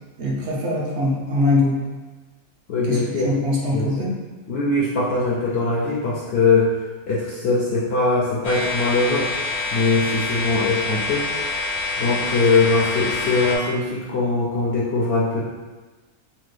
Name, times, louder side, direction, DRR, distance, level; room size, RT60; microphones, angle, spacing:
voice 1, 0.2-1.8 2.8-4.1, left 2 dB, 65° right, -3 dB, 0.7 m, -22 dB
voice 2, 2.7-3.3 3.7-3.9 4.5-6.7 7.1-9.3 9.7-11.3 12.0-15.4, left 3 dB, 70° left, -7 dB, 0.6 m, -21 dB
sound 1, 8.4-13.6, left 3 dB, 90° left, 1.1 m, -26 dB
2.8 x 2.2 x 3.2 m, 1.3 s
omnidirectional pair, 1.6 m